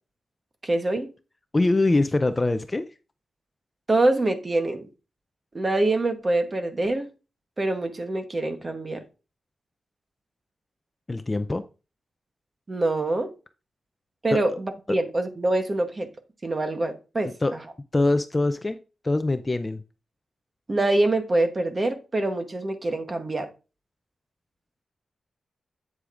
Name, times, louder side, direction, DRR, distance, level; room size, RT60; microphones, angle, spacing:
voice 1, 0.6-1.1 3.9-4.9 5.5-7.1 7.6-9.0 12.7-13.3 14.2-16.1 16.4-17.3 20.7-23.5, right 2 dB, 25° right, 1.0 m, -25 dB
voice 2, 1.5-2.9 11.1-11.6 14.3-14.6 17.4-17.5 17.9-18.8 19.0-19.8, left 2 dB, 20° left, 0.4 m, -23 dB
8.5 x 7.9 x 2.5 m
wide cardioid pair, 175°, 0 cm